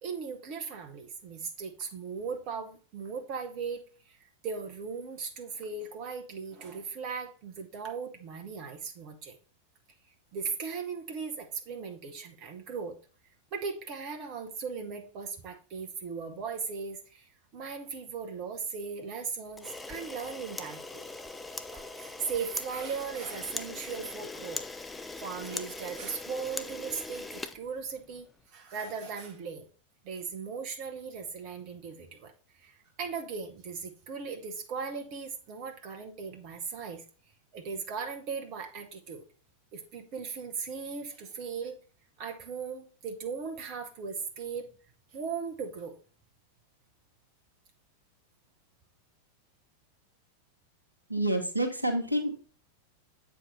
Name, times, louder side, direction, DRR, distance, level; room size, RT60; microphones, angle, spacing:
voice 1, 0.0-3.8 4.4-9.4 10.3-13.0 13.5-21.0 21.5-24.6 25.2-29.7 30.0-32.3 32.6-37.0 37.5-39.2 39.7-41.8 42.2-44.7 45.1-46.0, right 5 dB, 40° right, 4 dB, 1.0 m, -38 dB
Camera, 19.5-28.3, left 3 dB, 10° left, 0.5 m, -41 dB
voice 2, 51.1-52.3, right 1 dB, 85° right, 4 dB, 1.2 m, -28 dB
7.6 x 4.9 x 4.1 m, 0.38 s
figure-of-eight pair, 90°, 0 cm